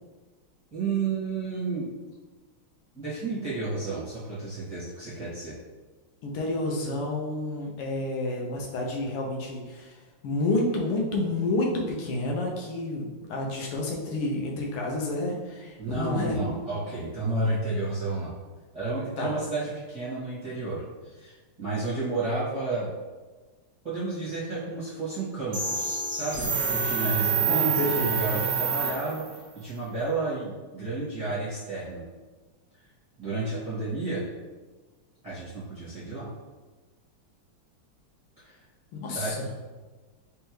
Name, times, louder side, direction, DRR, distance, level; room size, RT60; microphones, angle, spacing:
voice 1, 0.7-1.9 2.9-5.6 15.8-18.3 18.7-22.9 23.8-29.2 29.5-32.0 33.2-34.2 35.2-36.3 38.4-38.6 39.1-39.4, right 3 dB, 20° right, -12 dB, 1.3 m, -31 dB
voice 2, 6.2-10.0 10.2-16.6 19.2-19.3 27.5-28.1 38.9-39.5, left 2 dB, 85° left, -1 dB, 1.7 m, -29 dB
sound 1, 25.5-29.4, right 5 dB, 60° right, 0.7 m, -27 dB
4.0 x 3.5 x 3.0 m, 1.3 s
omnidirectional pair, 2.4 m